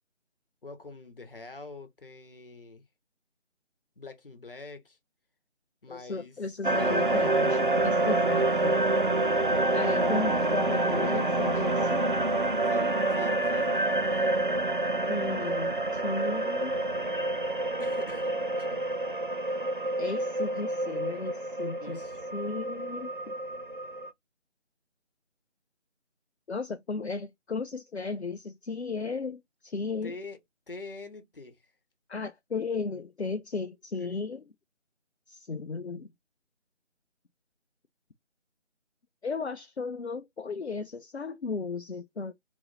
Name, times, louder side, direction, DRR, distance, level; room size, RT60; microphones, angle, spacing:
voice 1, 0.6-2.8 4.0-5.0 5.8-6.4 12.6-13.8 14.1-14.5 17.8-18.8 21.8-22.2 30.0-30.4 30.7-31.6 34.0-34.2, left 3 dB, 50° left, 1.0 m, -45 dB
voice 2, 5.9-8.8 9.7-12.1 15.1-16.8 20.0-22.0 22.3-23.3 26.5-30.1 32.1-34.5 35.3-36.1 39.2-42.3, left 4 dB, 65° left, 0.7 m, -35 dB
sound 1, 6.6-24.1, right 2 dB, 45° right, 0.4 m, -27 dB
4.5 x 2.0 x 4.0 m
figure-of-eight pair, 160°, 36 cm